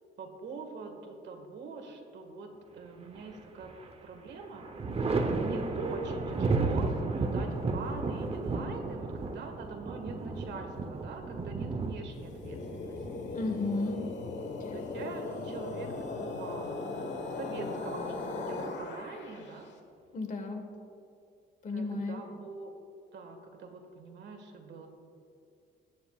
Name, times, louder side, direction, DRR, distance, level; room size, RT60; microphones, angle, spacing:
voice 1, 0.2-3.7 4.0-4.7 5.0-13.0 14.7-16.8 17.3-19.7 21.7-22.7 23.1-24.9, right 3 dB, 70° right, 4 dB, 1.7 m, -43 dB
Thunder, 3.1-3.9 4.3-13.9 15.4-16.2, right 3 dB, 30° right, 0.8 m, -33 dB
sound 1, 12.2-19.5, left 3 dB, 75° left, 1.3 m, -38 dB
voice 2, 13.3-14.2 14.6-14.7 20.1-20.7 21.6-22.3, left 2 dB, 45° left, 4 dB, 1.6 m, -34 dB
20.0 x 9.3 x 2.4 m, 2.5 s
cardioid pair, 110°, 19 cm